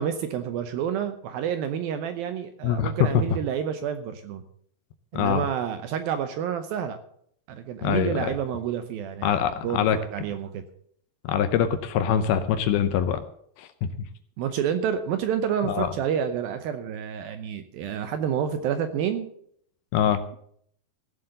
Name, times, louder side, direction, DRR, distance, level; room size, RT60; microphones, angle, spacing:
voice 1, 0.0-4.4 5.1-7.0 7.5-10.6 14.4-19.3, right 8 dB, 75° right, 9 dB, 2.3 m, -29 dB
voice 2, 2.6-3.1 5.1-5.5 7.8-8.3 9.2-10.0 11.2-13.2 13.6-13.9 15.6-15.9 19.9-20.2, left 9 dB, 80° left, 10 dB, 2.4 m, -24 dB
16.0 x 7.6 x 6.6 m, 0.66 s
omnidirectional pair, 4.9 m